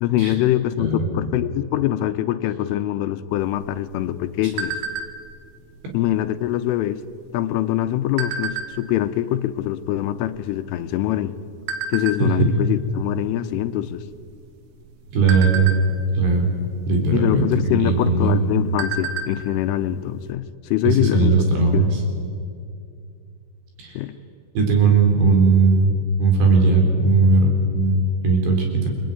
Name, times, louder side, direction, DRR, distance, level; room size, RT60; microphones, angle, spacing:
voice 1, 0.0-4.8 5.9-7.0 7.3-11.3 11.9-14.0 17.1-21.3 21.7-21.9 24.0-24.2, left 13 dB, 80° left, 11 dB, 3.4 m, -23 dB
sound 1, 3.4-5.4 5.9-6.1 6.4-6.8 7.5-9.0 9.6-9.7 9.9-11.2 11.7-12.2 12.7-13.0 13.3-13.5 13.9-14.5 14.9-16.3 17.4-17.5 17.9-18.0 18.4-19.4 19.7-19.8 20.2-20.3, right 4 dB, 85° right, 4.6 m, -30 dB
voice 2, 12.2-12.5 15.1-15.7 16.2-16.5 16.9-18.4 20.9-21.9 23.8-24.0 24.6-25.9 26.2-28.9, right 3 dB, 60° right, 2 dB, 6.0 m, -18 dB
28.5 x 21.5 x 9.4 m, 2.4 s
omnidirectional pair, 5.7 m